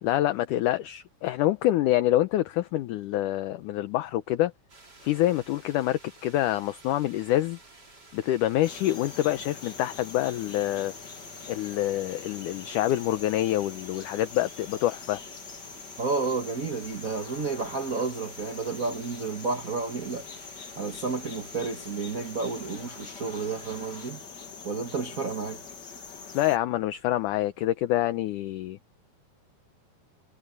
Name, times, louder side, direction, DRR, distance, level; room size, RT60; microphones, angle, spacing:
voice 1, 0.0-4.5 5.0-7.6 8.1-10.9 11.5-15.2 26.3-28.8, left 14 dB, 70° left, 2.1 m, -26 dB
sound 1, 4.7-24.1, right 2 dB, 25° right, 5.2 m, -53 dB
sound 2, 8.6-26.6, left 5 dB, 35° left, 2.0 m, -44 dB
voice 2, 16.0-20.2 20.7-24.2 24.6-25.6, right 4 dB, 75° right, 0.7 m, -31 dB
omnidirectional pair, 4.3 m